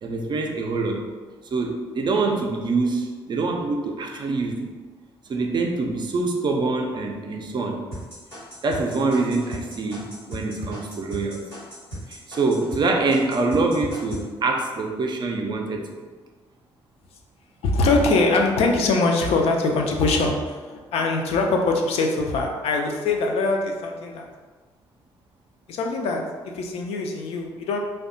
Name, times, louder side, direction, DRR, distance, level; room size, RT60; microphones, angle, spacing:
voice 1, 0.0-1.0 1.5-4.7 5.3-7.8 8.6-11.4 12.1-16.0, right 3 dB, 35° right, 2 dB, 0.4 m, -25 dB
sound 1, 7.9-12.8 13.1-14.2, equal, 90° left, 1.1 m, -36 dB
voice 2, 17.6-24.3 25.7-26.2 26.5-27.8, left 3 dB, 55° left, 2 dB, 0.4 m, -22 dB
2.6 x 2.2 x 2.5 m, 1.4 s
figure-of-eight pair, 45°, 12 cm